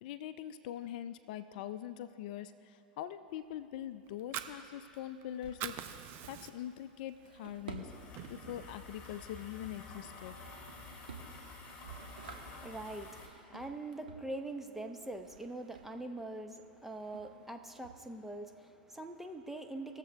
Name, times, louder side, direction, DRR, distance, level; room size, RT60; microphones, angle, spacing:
voice 1, 0.0-5.8 6.3-7.9 8.3-10.4, left 11 dB, 65° left, 12 dB, 0.5 m, -43 dB
Drawer open or close, 3.3-18.5, right 5 dB, 80° right, 1.3 m, -54 dB
Fire, 4.1-5.2 5.5-6.8 7.2-7.4 7.8-8.8, right 10 dB, 45° right, 0.7 m, -43 dB
sound 1, 7.9-13.3, left 3 dB, 25° left, 2.7 m, -50 dB
voice 2, 12.2-20.0, right 2 dB, 5° right, 5 dB, 0.9 m, -43 dB
20.5 x 7.4 x 3.4 m, 2.5 s
hypercardioid pair, 95°, 5 cm